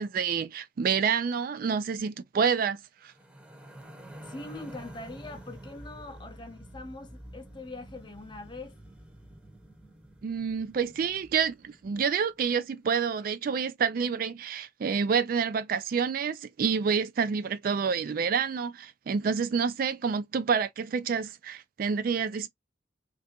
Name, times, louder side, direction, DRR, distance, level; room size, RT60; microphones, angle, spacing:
voice 1, 0.0-3.1 10.2-22.5, right 6 dB, 50° right, 0.3 m, -28 dB
sound 1, 3.0-12.4, right 1 dB, 5° right, 0.8 m, -48 dB
voice 2, 4.2-8.7, left 2 dB, 25° left, 0.6 m, -43 dB
3.3 x 2.6 x 2.8 m
head